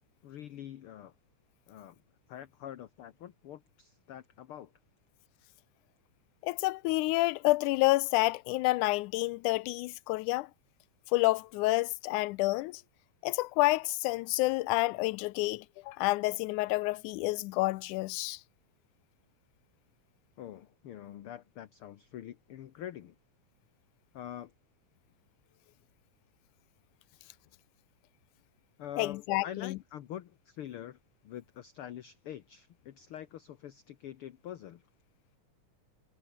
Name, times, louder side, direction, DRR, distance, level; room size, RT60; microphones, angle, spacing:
voice 1, 0.2-1.1 1.7-2.0 2.3-4.7 20.4-23.1 24.1-24.5 28.8-31.0 31.2-34.8, left 11 dB, 60° left, 1.6 m, -45 dB
voice 2, 6.4-10.5 11.1-12.8 13.2-18.4 29.0-29.8, left 20 dB, 90° left, 2.1 m, -29 dB
omnidirectional pair, 3.4 m